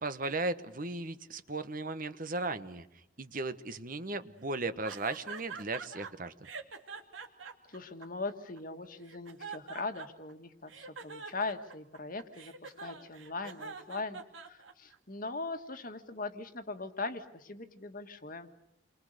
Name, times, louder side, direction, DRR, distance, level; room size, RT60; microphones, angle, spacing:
voice 1, 0.0-2.9 3.2-6.3, right 2 dB, 45° right, 11 dB, 1.1 m, -36 dB
sound 1, 4.8-6.1 6.4-8.6 9.0-10.3 10.7-15.0, right 5 dB, 80° right, 2.7 m, -44 dB
voice 2, 7.7-18.5, left 3 dB, 45° left, 8 dB, 1.7 m, -40 dB
29.5 x 24.0 x 6.7 m, 0.81 s
head